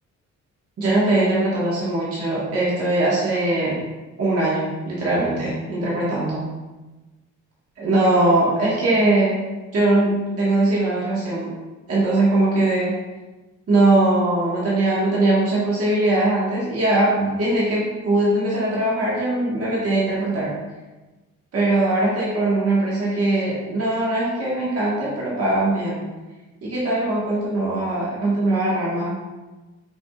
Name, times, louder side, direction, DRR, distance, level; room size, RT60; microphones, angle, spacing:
voice 1, 0.8-3.8 4.2-6.4 7.8-9.4 9.7-11.5 11.9-12.9 13.7-20.5 21.5-26.1 26.6-29.1, right 2 dB, 50° right, -7 dB, 1.4 m, -21 dB
5.9 x 2.6 x 2.4 m, 1.2 s
cardioid pair, 90°, 30 cm